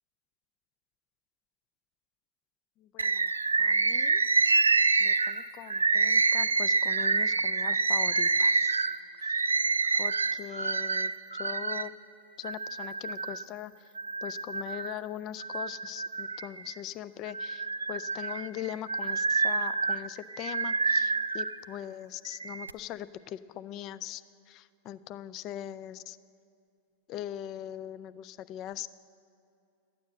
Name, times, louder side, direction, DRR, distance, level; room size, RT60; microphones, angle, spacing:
voice 1, 2.8-3.3 3.6-4.6 5.0-8.9 9.2-9.6 10.0-11.9 12.4-13.9 14.2-26.2 27.1-28.9, left 12 dB, 40° left, 15 dB, 0.4 m, -41 dB
Bird, 3.0-11.9 12.4-13.4 14.0-15.0 15.4-16.8 17.3-21.5 22.2-22.7, right 4 dB, 85° right, 0.3 m, -27 dB
13.0 x 9.2 x 7.7 m, 2.4 s
figure-of-eight pair, 90°, 0 cm